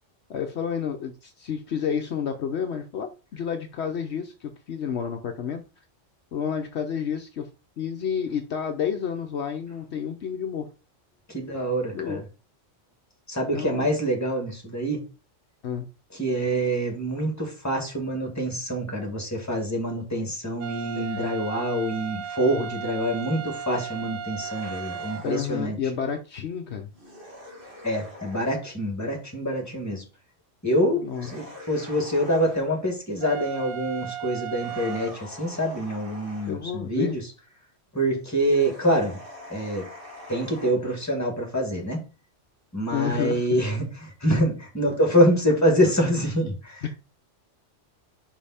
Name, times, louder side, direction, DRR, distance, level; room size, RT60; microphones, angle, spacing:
voice 1, 0.3-5.6 6.3-7.5 7.8-10.7 11.9-12.2 13.5-14.0 15.6-15.8 21.0-21.4 25.2-26.9 30.9-31.3 36.5-37.1 42.9-43.6 46.8-46.9, left 7 dB, 65° left, 1.0 m, -30 dB
voice 2, 11.3-12.2 13.3-15.0 16.1-25.8 27.8-30.0 30.6-37.2 37.9-39.2 39.5-39.9 40.3-42.0 42.7-46.8, equal, 15° left, 2.1 m, -26 dB
sound 1, 20.6-25.3 33.2-35.1, right 8 dB, 80° right, 1.0 m, -35 dB
sound 2, 24.3-25.5 26.9-28.6 31.1-32.7 34.5-36.6 38.4-40.7, equal, 45° right, 2.3 m, -44 dB
5.5 x 5.3 x 4.2 m
omnidirectional pair, 1.3 m